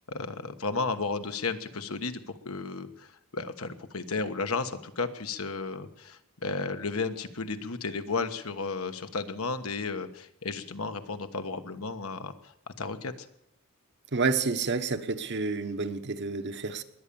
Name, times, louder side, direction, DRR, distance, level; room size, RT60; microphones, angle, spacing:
voice 1, 0.0-13.3, left 4 dB, 75° left, 8 dB, 1.3 m, -33 dB
voice 2, 14.1-16.8, right 4 dB, 55° right, 8 dB, 1.1 m, -29 dB
21.5 x 8.8 x 7.0 m, 0.77 s
head